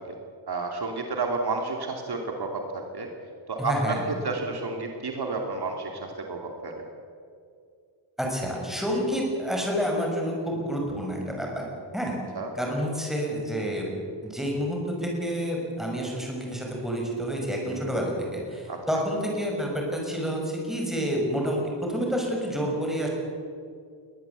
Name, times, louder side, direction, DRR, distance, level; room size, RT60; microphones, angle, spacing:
voice 1, 0.5-3.1 3.5-4.0 4.2-6.8 12.3-12.5 18.7-19.0, right 3 dB, 50° right, 2 dB, 2.8 m, -31 dB
voice 2, 3.6-4.0 8.2-11.7 11.9-12.2 12.5-13.9 14.2-23.1, equal, ahead, -1 dB, 6.0 m, -29 dB
21.5 x 19.0 x 8.2 m, 2.3 s
wide cardioid pair, 150°, 49 cm